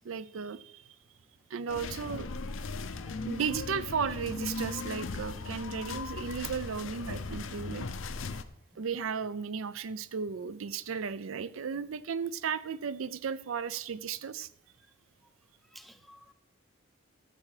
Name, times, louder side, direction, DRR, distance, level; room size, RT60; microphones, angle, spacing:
voice 1, 0.0-0.8 1.5-2.4 3.3-7.9 8.8-14.5, right 6 dB, 75° right, 0.5 m, -35 dB
train-ride-edited-one-station, 1.7-8.4, left 3 dB, 65° left, 0.6 m, -38 dB
voice 2, 2.6-3.2 8.7-8.8 15.7-16.3, equal, ahead, 0.5 m, -54 dB
12.0 x 7.5 x 4.9 m
head